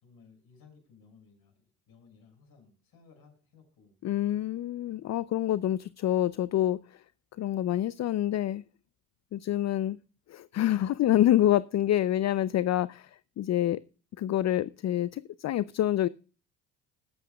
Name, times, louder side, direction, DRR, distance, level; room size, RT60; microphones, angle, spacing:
voice 1, 0.0-4.6, left 5 dB, 60° left, 6.2 m, -59 dB
voice 2, 4.0-7.0 7.4-8.6 9.3-10.0 10.3-13.8 14.2-16.1, left 12 dB, 40° left, 0.5 m, -27 dB
20.0 x 8.4 x 2.4 m
hypercardioid pair, 60°, 42 cm